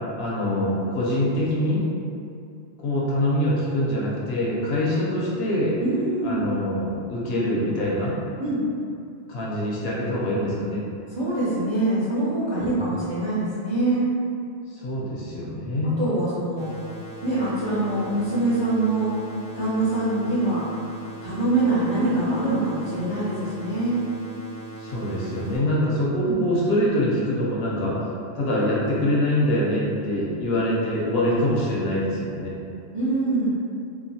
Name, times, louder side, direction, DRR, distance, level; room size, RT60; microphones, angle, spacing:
voice 1, 0.2-1.8 2.8-5.8 6.2-8.2 9.3-10.8 12.7-12.9 14.7-16.0 24.8-28.0 28.3-32.6, left 1 dB, 65° left, -5 dB, 0.8 m, -24 dB
voice 2, 5.8-6.4 8.4-8.6 11.1-14.0 16.0-16.7 17.2-19.1 19.5-20.6 21.2-24.0 26.2-26.4 32.9-33.6, right 2 dB, 35° right, -11 dB, 0.4 m, -24 dB
sound 1, 16.6-25.6, right 2 dB, 70° right, 1.1 m, -40 dB
2.9 x 2.2 x 2.7 m, 2.4 s
omnidirectional pair, 1.1 m